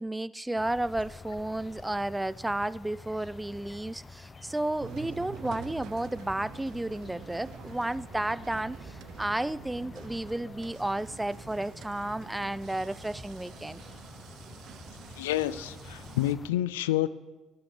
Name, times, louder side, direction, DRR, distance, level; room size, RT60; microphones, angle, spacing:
voice 1, 0.0-13.8, right 1 dB, 10° right, 0.3 m, -32 dB
sound 1, 0.6-16.5, left 4 dB, 35° left, 0.7 m, -48 dB
sound 2, 4.8-16.3, right 10 dB, 65° right, 0.5 m, -47 dB
voice 2, 15.2-17.1, left 14 dB, 80° left, 0.3 m, -29 dB
16.5 x 11.0 x 3.3 m
hypercardioid pair, 50°, 0 cm